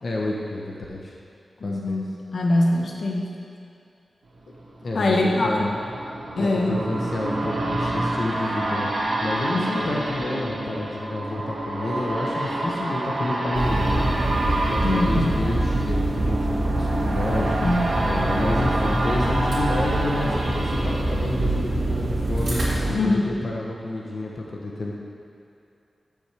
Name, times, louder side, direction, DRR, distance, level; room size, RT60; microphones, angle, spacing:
voice 1, 0.0-1.1 1.6-2.0 4.8-5.7 6.4-8.9 9.2-14.4 14.7-17.6 18.0-22.6 22.9-24.9, left 2 dB, 55° left, -2 dB, 0.9 m, -30 dB
voice 2, 1.6-3.3 4.9-5.7 6.4-6.8 9.5-9.7 14.8-15.3 17.6-17.9 22.9-23.3, left 2 dB, 80° left, -2 dB, 1.2 m, -23 dB
sound 1, 4.4-22.2 22.6-22.7, right 1 dB, 65° right, 1.5 m, -28 dB
sound 2, 13.5-22.9, right 1 dB, 80° right, 2.0 m, -25 dB
13.0 x 7.1 x 3.4 m, 2.6 s
wide cardioid pair, 150°, 0 cm